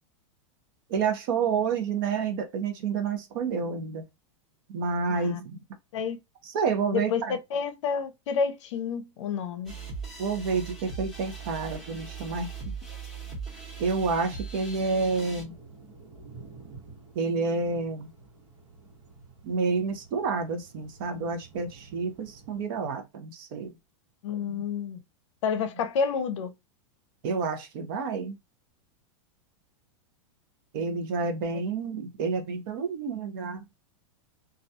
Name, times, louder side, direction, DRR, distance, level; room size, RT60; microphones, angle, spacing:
voice 1, 0.9-4.0 4.7-5.6 6.4-7.4 10.2-12.5 13.8-15.5 17.1-18.1 19.4-23.8 27.2-28.4 30.7-33.6, right 5 dB, 45° right, 0.6 m, -29 dB
voice 2, 5.1-5.4 5.9-6.2 6.9-7.2 7.5-9.7 24.2-25.0 25.4-26.5, left 6 dB, 70° left, 0.6 m, -29 dB
sound 1, 9.7-15.4, right 5 dB, ahead, 0.8 m, -40 dB
sound 2, 14.8-22.6, right 4 dB, 75° right, 1.1 m, -50 dB
2.3 x 2.2 x 2.6 m
supercardioid pair, 170°, 16 cm